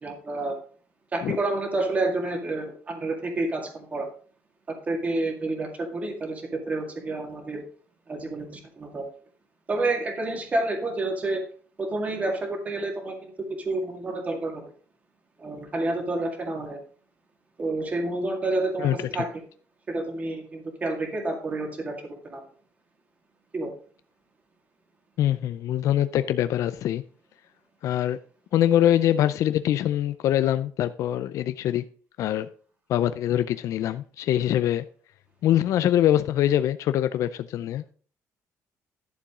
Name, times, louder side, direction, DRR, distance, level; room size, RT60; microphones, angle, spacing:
voice 1, 0.0-0.6 1.1-4.1 4.7-7.6 8.1-9.1 9.7-11.4 11.8-13.3 13.6-14.6 15.4-16.8 17.6-19.4 19.9-22.0 22.2-22.4 23.5-23.7, right 2 dB, 25° right, 2.0 m, -29 dB
voice 2, 25.2-27.0 27.8-28.2 28.5-31.8 32.2-32.5 32.9-34.8 35.4-37.9, left 11 dB, 70° left, 0.5 m, -23 dB
11.5 x 7.1 x 3.7 m
cardioid pair, 155°, 6 cm